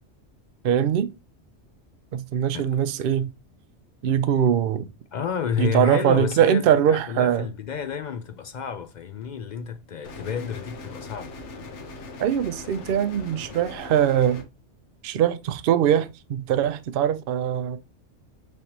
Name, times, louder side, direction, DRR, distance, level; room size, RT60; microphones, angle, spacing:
voice 1, 0.6-1.1 2.3-3.3 4.0-4.9 5.6-7.5 12.2-14.4 15.0-17.8, right 9 dB, 60° right, 0.6 m, -22 dB
voice 2, 5.1-11.3, left 7 dB, 60° left, 0.5 m, -30 dB
sound 1, 10.0-14.4, left 3 dB, 80° left, 1.2 m, -40 dB
5.2 x 3.3 x 2.9 m
omnidirectional pair, 1.2 m